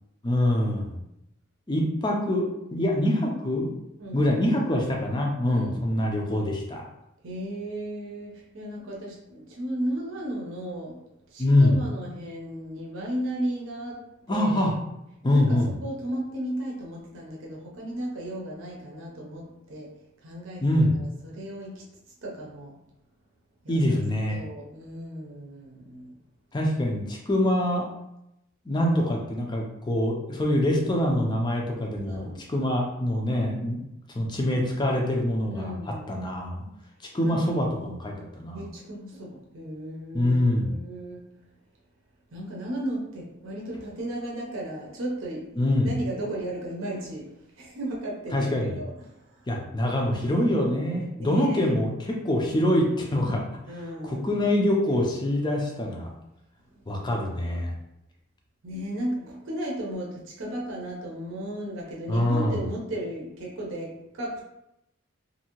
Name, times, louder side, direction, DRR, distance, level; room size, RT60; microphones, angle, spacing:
voice 1, 0.2-1.0 1.7-3.7 4.1-6.9 11.4-11.8 14.3-14.7 15.2-15.7 20.6-21.0 23.7-24.4 26.5-27.9 28.7-33.8 34.1-35.7 36.1-36.6 37.1-38.6 40.1-40.8 45.6-45.9 48.3-48.7 49.5-53.4 54.0-56.1 56.9-57.7 62.1-62.6, left 1 dB, 20° left, 0 dB, 0.4 m, -24 dB
voice 2, 4.0-4.3 5.5-6.0 7.2-11.0 11.3-14.7 15.3-19.9 20.2-20.6 21.2-21.8 22.2-22.7 23.6-23.8 24.3-26.2 32.1-32.5 35.5-36.2 37.2-37.4 38.5-41.2 42.3-49.4 51.1-51.7 53.7-54.5 56.8-56.9 58.6-64.4, right 1 dB, 65° right, -3 dB, 0.7 m, -35 dB
2.7 x 2.6 x 2.9 m, 0.85 s
head